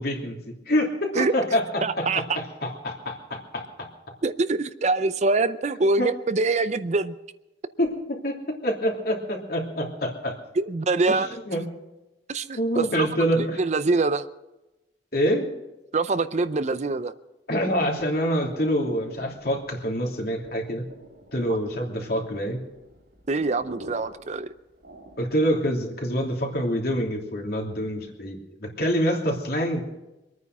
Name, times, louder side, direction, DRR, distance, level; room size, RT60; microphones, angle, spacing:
voice 1, 0.0-3.9 6.0-6.1 7.8-10.4 11.1-11.2 11.5-11.7 12.6-13.6 15.1-15.5 17.5-20.8 21.3-22.6 25.2-29.8, equal, 60° left, 1 dB, 2.9 m, -26 dB
voice 2, 1.8-2.2 4.2-7.1 10.6-11.3 12.3-13.1 13.6-14.3 15.9-17.1 23.3-24.5, right 3 dB, 40° right, 13 dB, 0.5 m, -24 dB
sound 1, 18.5-25.6, right 1 dB, 85° right, 3.8 m, -47 dB
23.5 x 9.5 x 6.1 m, 0.99 s
head